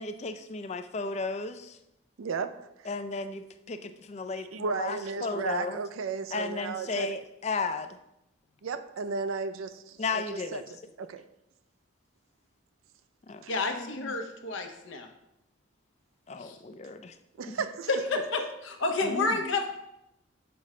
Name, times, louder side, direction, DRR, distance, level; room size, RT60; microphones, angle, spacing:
voice 1, 0.0-1.8 2.9-5.8 6.3-8.0 10.0-10.6 13.3-13.4 13.7-14.1 16.3-17.2 17.5-17.6 19.0-19.4, left 3 dB, 35° left, 0.4 m, -34 dB
voice 2, 2.2-2.9 4.5-7.1 8.6-10.6 11.0-11.3 13.4-13.5 17.4-17.9, right 5 dB, 90° right, 0.4 m, -34 dB
voice 3, 13.5-15.1 16.4-16.6 17.9-19.7, left 3 dB, 70° left, 0.8 m, -30 dB
6.9 x 4.9 x 3.2 m
head